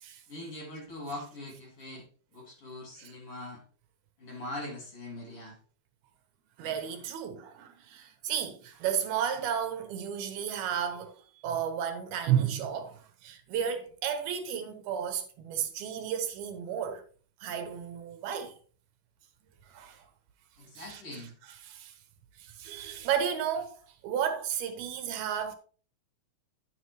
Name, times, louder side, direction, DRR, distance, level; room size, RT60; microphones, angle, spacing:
voice 1, 0.3-2.1 2.3-3.6 4.2-5.6 20.6-21.3, left 1 dB, 40° left, 3.5 m, -42 dB
voice 2, 6.6-11.1 11.4-17.0 17.4-18.5 19.7-20.0 20.8-21.2 21.6-21.9 22.4-25.6, right 8 dB, 85° right, 3.2 m, -33 dB
10.5 x 8.1 x 3.2 m
omnidirectional pair, 4.3 m